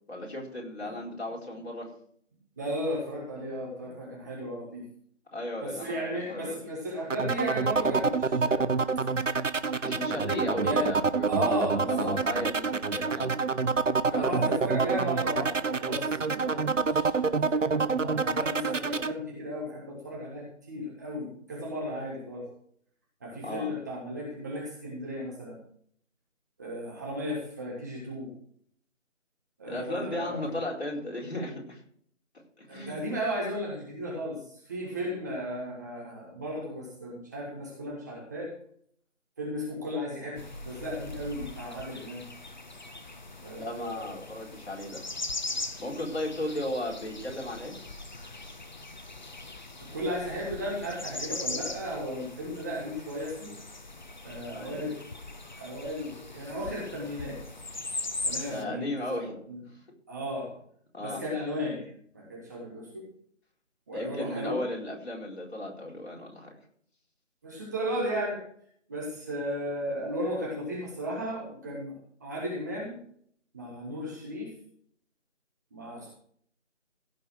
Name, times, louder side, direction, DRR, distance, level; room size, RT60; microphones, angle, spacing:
voice 1, 0.1-1.9 5.3-6.6 9.8-13.3 14.1-14.3 23.4-23.7 29.7-31.8 32.6-33.0 43.6-45.0 45.8-47.8 54.5-54.9 58.5-59.4 59.7-59.8 60.9-61.2 63.9-66.6, left 1 dB, 55° left, -2 dB, 4.4 m, -35 dB
voice 2, 2.6-4.8 5.6-8.7 10.6-10.9 11.3-12.1 14.1-22.5 23.2-25.6 26.6-28.3 29.6-30.5 32.7-38.5 39.4-42.3 43.4-44.2 45.5-45.6 49.9-53.5 54.2-55.0 55.6-57.4 58.2-59.6 60.1-60.5 61.0-61.9 62.1-63.1 63.9-64.6 67.4-68.4 68.9-71.9 72.2-73.0 73.5-74.5 75.7-76.1, equal, 15° right, -4 dB, 1.5 m, -35 dB
sound 1, 7.1-19.1, right 4 dB, 80° right, 1.0 m, -27 dB
sound 2, 40.4-58.6, left 2 dB, 35° left, 0.8 m, -40 dB
16.0 x 5.4 x 6.2 m, 0.62 s
figure-of-eight pair, 165°, 38 cm